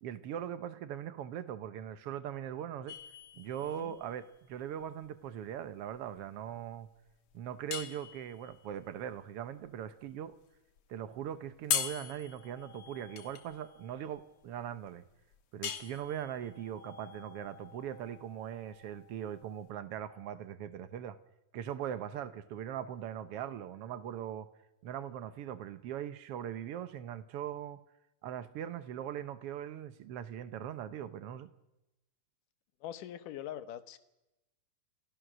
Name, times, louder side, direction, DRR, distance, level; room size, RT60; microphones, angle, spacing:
voice 1, 0.0-3.0 3.3-6.9 7.3-10.3 10.9-15.0 15.5-21.2 21.5-24.5 24.8-27.8 28.2-31.5, right 10 dB, 70° right, 1.4 m, -40 dB
sound 1, 2.9-19.7, left 8 dB, 55° left, 2.2 m, -42 dB
voice 2, 3.6-4.0 32.8-34.0, left 11 dB, 80° left, 2.6 m, -43 dB
28.0 x 16.0 x 6.2 m
omnidirectional pair, 3.8 m